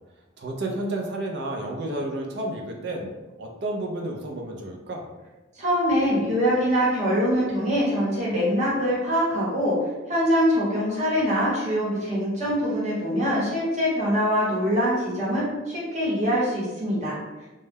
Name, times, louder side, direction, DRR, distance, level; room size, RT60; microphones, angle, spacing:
voice 1, 0.4-3.1 3.4-5.0, right 1 dB, 55° right, 1 dB, 0.4 m, -31 dB
voice 2, 5.5-9.8 10.1-17.2, equal, 35° right, -7 dB, 1.0 m, -23 dB
2.2 x 2.1 x 3.3 m, 1.1 s
head